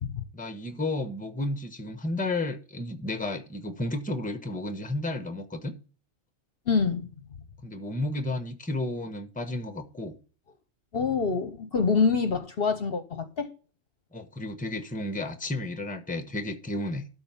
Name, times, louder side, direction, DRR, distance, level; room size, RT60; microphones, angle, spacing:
voice 1, 0.3-5.7 7.6-10.2 14.1-17.1, left 2 dB, 5° left, 0.9 m, -32 dB
voice 2, 6.7-7.1 10.9-13.5, left 5 dB, 50° left, 1.0 m, -26 dB
12.5 x 4.2 x 5.6 m
omnidirectional pair, 1.3 m